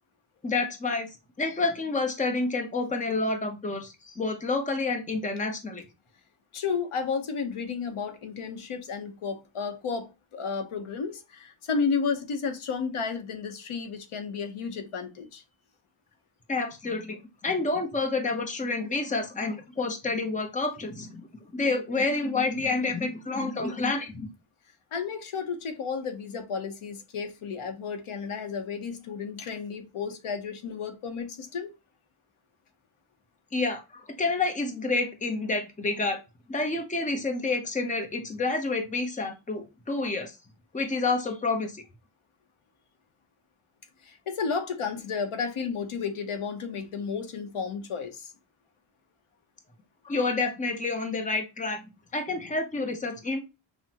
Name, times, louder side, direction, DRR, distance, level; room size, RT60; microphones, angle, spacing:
voice 1, 0.4-1.1 1.4-5.8 16.5-17.2 17.4-21.2 21.5-24.3 33.5-33.8 34.2-36.2 36.5-40.3 40.7-41.8 50.0-51.8 52.1-53.4, left 3 dB, 15° left, 0.6 m, -28 dB
voice 2, 6.5-15.4 24.9-31.7 44.0-48.3, left 5 dB, 85° left, 0.9 m, -32 dB
5.8 x 2.1 x 2.8 m
wide cardioid pair, 155°, 48 cm